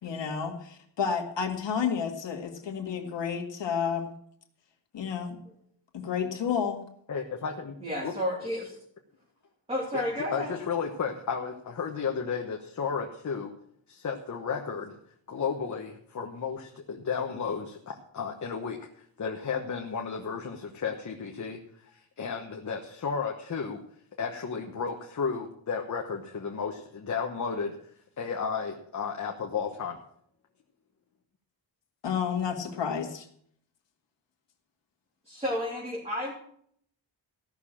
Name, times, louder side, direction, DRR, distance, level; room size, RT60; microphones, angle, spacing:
voice 1, 0.0-4.1 4.9-5.4 5.9-6.9 32.0-33.3, left 7 dB, 65° left, 4 dB, 2.0 m, -30 dB
voice 2, 7.1-7.7 8.0-8.1 9.9-10.0 10.3-13.5 13.9-14.9 15.3-18.8 19.2-21.6 21.9-23.8 24.2-27.8 28.2-30.0, left 6 dB, 40° left, 2 dB, 1.2 m, -33 dB
voice 3, 7.8-8.8 9.7-10.5 35.2-36.3, left 1 dB, 15° right, -5 dB, 3.0 m, -31 dB
15.5 x 6.7 x 7.4 m, 0.65 s
wide cardioid pair, 175°, 46 cm